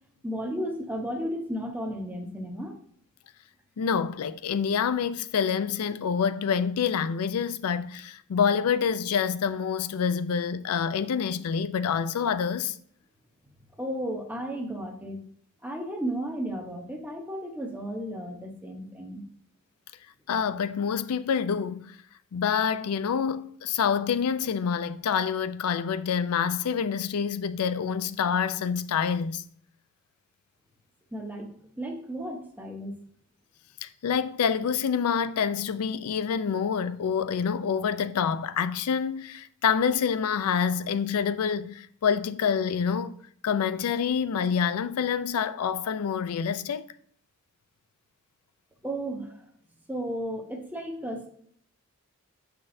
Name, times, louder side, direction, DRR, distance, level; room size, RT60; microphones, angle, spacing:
voice 1, 0.2-2.8 13.8-15.2 15.6-19.2 31.1-32.9 48.8-49.4 49.9-51.3, equal, 10° right, 0.8 m, -34 dB
voice 2, 3.8-12.8 20.3-22.0 22.3-29.4 33.8-43.1 43.4-46.8, left 7 dB, 85° left, 0.4 m, -27 dB
7.4 x 5.9 x 2.6 m
head